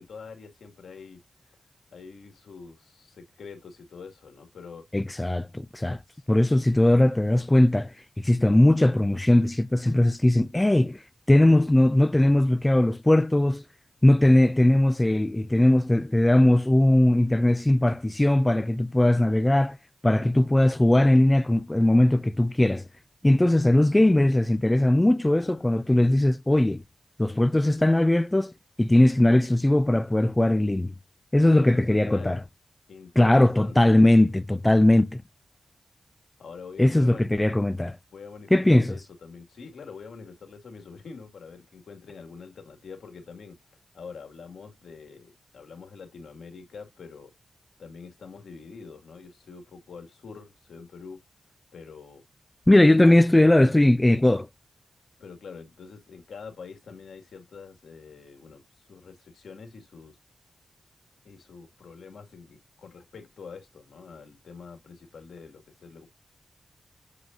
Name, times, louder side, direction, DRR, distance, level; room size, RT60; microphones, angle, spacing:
voice 1, 0.0-1.6 1.9-4.8 6.1-6.3 25.3-26.2 31.4-32.4 32.9-34.0 36.4-37.3 38.1-43.6 43.9-47.3 47.8-51.2 51.7-52.2 53.0-53.2 55.2-60.2 61.2-66.1, left 5 dB, 80° left, 2.1 m, -45 dB
voice 2, 4.9-6.0 6.3-7.9 8.2-11.0 11.3-13.6 14.0-19.8 20.0-22.8 23.2-26.8 27.2-28.5 28.8-30.9 31.3-32.4 33.2-35.1 36.8-38.0 38.5-38.9 52.7-54.5, left 1 dB, 15° left, 0.4 m, -20 dB
8.0 x 5.0 x 2.6 m
cardioid pair, 55°, 0 cm